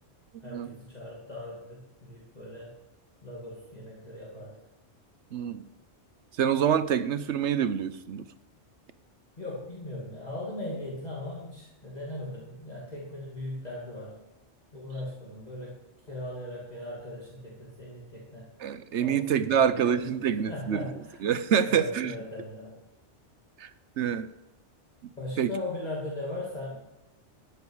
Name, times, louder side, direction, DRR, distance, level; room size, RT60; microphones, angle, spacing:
voice 1, 0.4-2.7 3.2-4.5 9.4-14.2 14.7-15.8 16.1-18.5 19.0-20.2 20.5-21.3 21.7-22.8 25.2-26.8, left 1 dB, 35° left, 2.7 m, -39 dB
voice 2, 5.3-5.7 6.4-8.2 18.6-20.9 21.2-22.1 23.6-23.7 24.0-24.3 25.4-25.5, right 8 dB, 75° right, 1.0 m, -26 dB
13.5 x 9.4 x 4.8 m
omnidirectional pair, 1.2 m